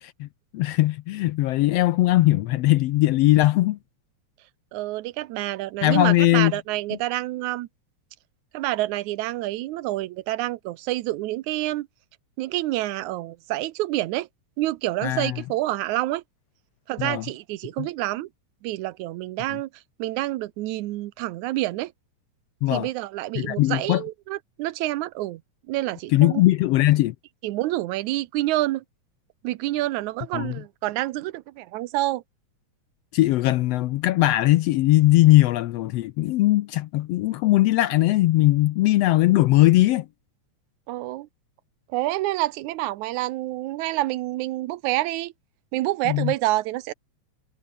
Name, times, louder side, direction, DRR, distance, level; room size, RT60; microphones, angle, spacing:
voice 1, 0.5-3.8 5.8-6.5 15.0-15.4 17.0-17.2 17.8-17.9 22.6-22.9 23.3-24.0 26.1-27.1 30.3-30.6 33.1-40.1 46.0-46.3, left 16 dB, 75° left, 1.5 m, -20 dB
voice 2, 4.7-7.7 8.5-11.9 12.4-14.3 14.6-16.2 16.9-18.3 18.6-19.7 20.0-21.9 22.7-25.4 25.7-26.4 27.4-28.8 29.4-32.2 40.9-41.3 41.9-45.3 45.7-46.9, right 16 dB, 85° right, 2.2 m, -28 dB
omnidirectional pair, 3.3 m